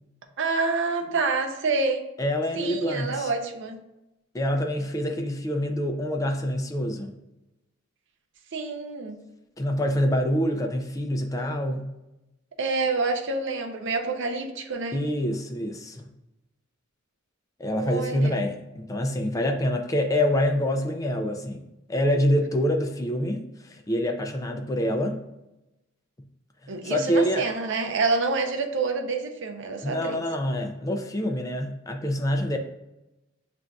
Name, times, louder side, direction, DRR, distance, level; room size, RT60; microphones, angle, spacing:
voice 1, 0.4-2.0 2.6-3.8 8.5-9.2 12.6-15.0 17.8-18.4 26.7-30.2, right 3 dB, 60° right, 4 dB, 0.5 m, -27 dB
voice 2, 2.2-3.3 4.3-7.2 9.6-11.9 14.9-16.1 17.6-21.6 21.9-25.2 26.2-26.3 26.6-27.5 29.8-32.6, equal, 15° left, 4 dB, 0.3 m, -26 dB
6.9 x 2.5 x 2.2 m, 0.94 s
head